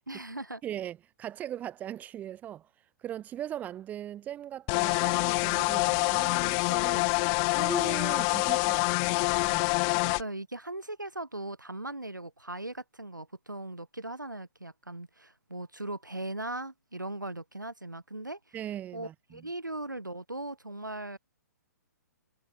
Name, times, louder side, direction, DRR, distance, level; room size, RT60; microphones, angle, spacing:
voice 1, 0.1-0.6 10.0-18.4 18.9-21.2, right 2 dB, 85° right, 1.7 m, -39 dB
voice 2, 0.6-2.7 3.0-7.1 7.5-9.8 18.5-19.5, right 11 dB, 15° right, 1.1 m, -40 dB
sound 1, 4.7-10.2, left 40 dB or more, 25° left, 0.6 m, -26 dB
figure-of-eight pair, 120°, 10 cm